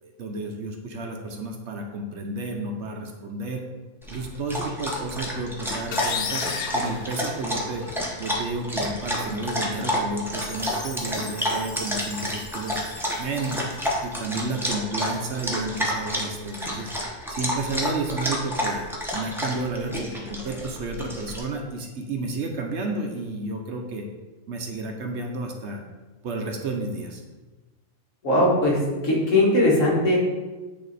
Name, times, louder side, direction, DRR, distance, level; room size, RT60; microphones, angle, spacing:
voice 1, 0.0-3.6 4.1-7.8 8.2-12.8 13.2-13.6 14.0-16.9 17.3-24.1 24.5-25.8 26.2-27.2, right 2 dB, 65° right, 3 dB, 0.9 m, -31 dB
Dog, 4.0-21.4, equal, ahead, 0.6 m, -30 dB
sound 1, 5.9-7.9, left 6 dB, 85° left, 1.0 m, -31 dB
Chime, 10.4-14.6, left 2 dB, 30° left, 0.8 m, -42 dB
voice 2, 28.2-30.2, left 1 dB, 65° left, -4 dB, 1.8 m, -20 dB
8.6 x 2.9 x 4.0 m, 1.2 s
omnidirectional pair, 1.4 m